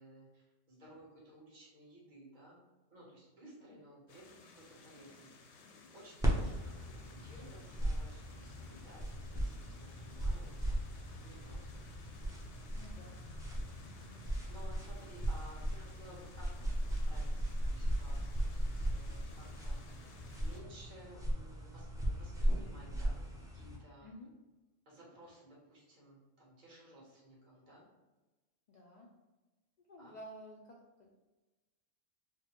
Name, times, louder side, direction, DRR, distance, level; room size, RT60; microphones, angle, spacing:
voice 1, 0.0-2.6 2.9-11.9 14.5-19.8 20.4-24.1 24.8-27.8 30.0-30.2, right 1 dB, 40° right, -5 dB, 1.2 m, -57 dB
sound 1, 4.1-20.6, left 4 dB, 70° left, 0.8 m, -58 dB
sound 2, 6.2-23.8, equal, 5° right, 0.3 m, -37 dB
voice 2, 12.7-13.3 13.9-14.2 24.0-24.3 28.7-29.1 29.9-31.2, equal, 85° left, -2 dB, 0.3 m, -53 dB
4.6 x 2.1 x 2.9 m, 1.2 s
omnidirectional pair, 1.3 m